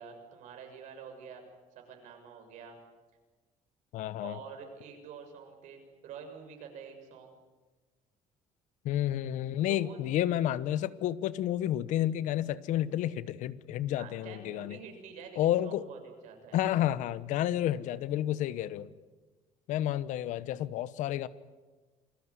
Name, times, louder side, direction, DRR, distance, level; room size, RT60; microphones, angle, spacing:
voice 1, 0.0-1.4 1.7-2.8 4.2-7.4 9.7-10.0 14.0-16.6, right 6 dB, 75° right, 4 dB, 6.7 m, -47 dB
voice 2, 3.9-4.4 8.8-14.8 15.4-15.9 16.5-18.9 19.7-21.3, left 12 dB, 75° left, 16 dB, 1.1 m, -30 dB
28.0 x 20.0 x 9.8 m, 1.3 s
cardioid pair, 135°, 13 cm